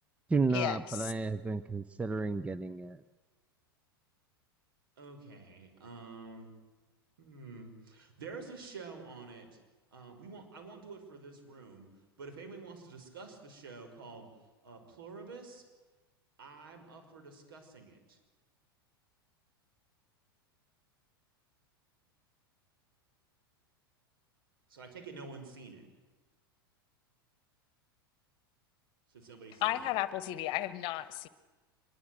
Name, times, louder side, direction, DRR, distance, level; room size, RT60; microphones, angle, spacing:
voice 1, 0.3-3.0, right 3 dB, 10° right, 13 dB, 0.7 m, -32 dB
voice 2, 5.0-6.6 7.2-9.6 9.9-11.9 12.2-14.3 14.6-15.6 16.4-18.2 24.7-25.8 29.1-29.9, right 4 dB, 65° right, 5 dB, 5.5 m, -48 dB
voice 3, 29.6-31.3, left 15 dB, 40° left, 15 dB, 1.3 m, -33 dB
25.5 x 22.0 x 7.9 m, 1.3 s
figure-of-eight pair, 85°, 12 cm